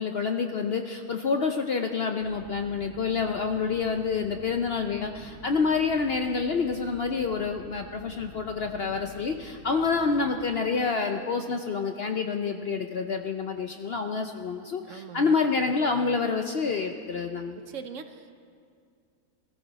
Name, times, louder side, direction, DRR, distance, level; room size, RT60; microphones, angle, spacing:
voice 1, 0.0-17.6, left 5 dB, 60° left, 5 dB, 0.7 m, -28 dB
sound 1, 2.2-10.3, left 1 dB, 75° left, 3.1 m, -48 dB
voice 2, 14.8-15.4 17.6-18.3, right 6 dB, 60° right, 9 dB, 1.0 m, -41 dB
21.0 x 14.0 x 4.1 m, 2.3 s
omnidirectional pair, 1.6 m